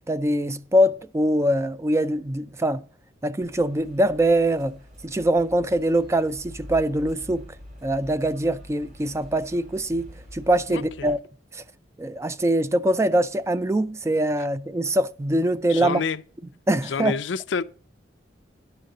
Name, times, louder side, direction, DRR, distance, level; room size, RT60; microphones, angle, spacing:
voice 1, 0.1-2.8 3.2-4.8 5.0-7.5 7.8-11.2 11.5-11.6 12.0-16.0 16.7-17.1, right 1 dB, 15° right, 0.3 m, -23 dB
sound 1, 3.4-11.2, left 1 dB, 45° right, 2.5 m, -45 dB
voice 2, 10.7-11.1 15.7-16.2 16.8-17.6, left 5 dB, 90° left, 0.5 m, -28 dB
10.5 x 6.8 x 3.8 m
head